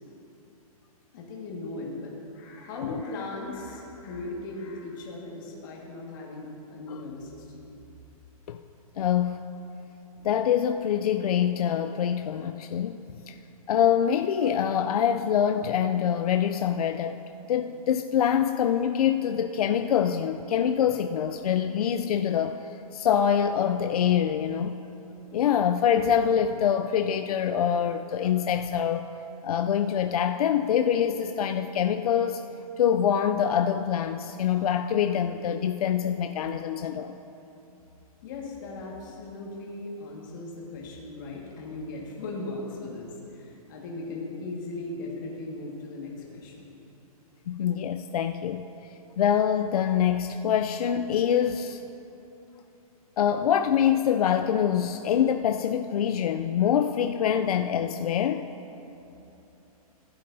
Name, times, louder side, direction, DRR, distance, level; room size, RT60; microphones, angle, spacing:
voice 1, 1.1-7.7 38.2-46.7, left 2 dB, 30° left, -3 dB, 1.7 m, -38 dB
voice 2, 9.0-9.4 10.2-13.0 13.3-13.4 13.7-17.2 17.5-22.6 22.9-24.8 25.3-29.1 29.4-32.4 32.8-37.1 47.5-48.7 49.2-51.8 53.2-58.5, left 9 dB, 75° left, 7 dB, 0.4 m, -25 dB
15.0 x 8.7 x 2.7 m, 2.9 s
hypercardioid pair, 175°, 19 cm